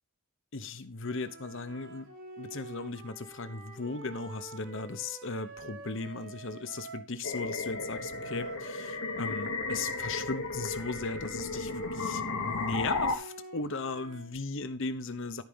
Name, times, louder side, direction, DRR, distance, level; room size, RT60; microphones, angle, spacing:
voice 1, 0.5-2.1 2.4-15.4, left 3 dB, 60° left, 11 dB, 1.0 m, -37 dB
Flute - E natural minor - bad-tempo-staccato, 1.0-7.1 7.7-14.3, right 3 dB, 75° right, 6.0 m, -47 dB
sound 1, 7.2-13.1, left 3 dB, 85° left, 1.5 m, -34 dB
13.5 x 4.9 x 5.6 m, 0.36 s
head